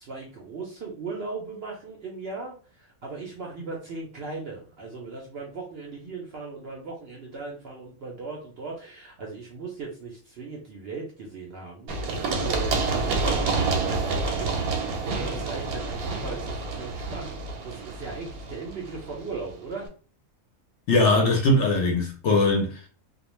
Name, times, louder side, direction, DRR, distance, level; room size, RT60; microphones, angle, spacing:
voice 1, 0.0-19.9, right 4 dB, 60° right, 0.6 m, -38 dB
Run, 11.9-19.5, right 3 dB, 85° right, 1.1 m, -28 dB
voice 2, 20.9-22.9, left 2 dB, 65° left, 0.8 m, -21 dB
2.3 x 2.1 x 3.0 m
omnidirectional pair, 1.5 m